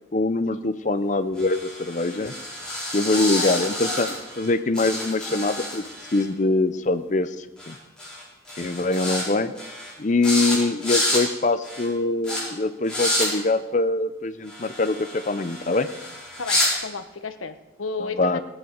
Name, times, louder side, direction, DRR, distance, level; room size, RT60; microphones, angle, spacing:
voice 1, 0.1-2.3 2.9-5.8 6.1-7.8 8.6-9.5 10.0-15.9 18.0-18.4, left 2 dB, 40° left, 12 dB, 0.6 m, -23 dB
sound 1, 1.4-4.5 4.7-6.2 7.6-7.7 8.0-8.2 8.5-9.2 9.6-9.9 10.2-10.6 10.8-11.2 11.6-11.9 12.2-12.4 12.8-13.3 14.5-16.7, left 1 dB, 5° left, 4.6 m, -29 dB
voice 2, 16.4-18.4, left 4 dB, 90° left, 10 dB, 0.9 m, -32 dB
18.0 x 9.6 x 5.2 m, 1.1 s
head